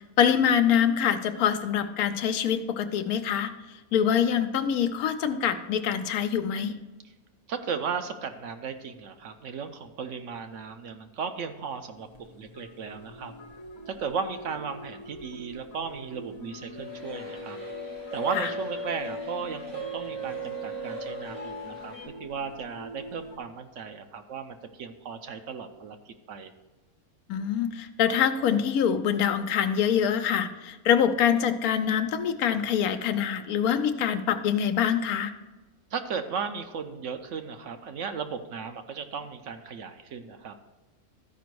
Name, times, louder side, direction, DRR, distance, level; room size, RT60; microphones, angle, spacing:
voice 1, 0.2-6.7 18.3-18.5 27.3-35.3, left 8 dB, 85° left, 10 dB, 1.1 m, -25 dB
voice 2, 7.5-13.4 13.9-17.6 18.1-21.9 22.2-26.5 35.9-40.5, right 6 dB, 65° right, 8 dB, 0.9 m, -36 dB
sound 1, 12.0-23.4, equal, 40° left, 0.4 m, -45 dB
sound 2, 16.7-22.0, right 1 dB, 85° right, 4.3 m, -37 dB
13.0 x 5.1 x 4.6 m, 1.1 s
omnidirectional pair, 1.5 m